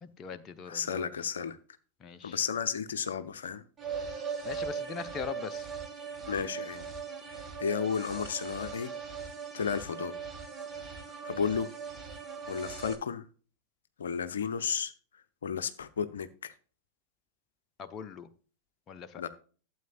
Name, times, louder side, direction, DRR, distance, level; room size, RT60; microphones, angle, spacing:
voice 1, 0.0-1.1 2.0-2.4 4.4-5.7 17.8-18.3 18.9-19.3, left 6 dB, 25° left, 0.8 m, -41 dB
voice 2, 0.7-1.6 2.2-3.6 6.3-6.8 7.6-8.9 9.5-10.1 10.7-10.8 11.2-11.7 12.5-13.2 14.0-14.9 15.4-16.5 19.2-19.3, left 7 dB, 65° left, 0.7 m, -33 dB
sound 1, 3.8-12.9, right 6 dB, 20° right, 1.7 m, -40 dB
12.5 x 7.9 x 2.5 m
figure-of-eight pair, 90°, 0 cm